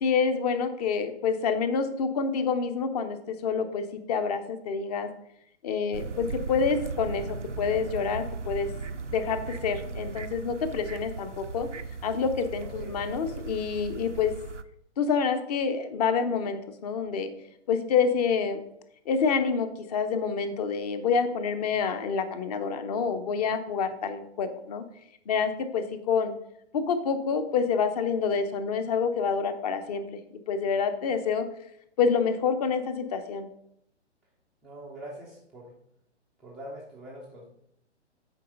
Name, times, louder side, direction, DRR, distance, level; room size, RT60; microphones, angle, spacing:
voice 1, 0.0-5.1 5.6-8.7 9.1-11.7 12.0-14.3 15.0-17.3 17.7-18.6 19.1-24.8 25.3-26.3 26.7-30.2 30.5-31.5 32.0-33.5, left 6 dB, 35° left, 9 dB, 0.9 m, -27 dB
sound 1, 5.9-14.6, right 4 dB, 90° right, 0.6 m, -37 dB
voice 2, 12.6-12.9 34.6-35.7 36.4-37.4, right 1 dB, ahead, -7 dB, 0.4 m, -43 dB
8.4 x 4.5 x 5.3 m, 0.74 s
figure-of-eight pair, 120°, 35 cm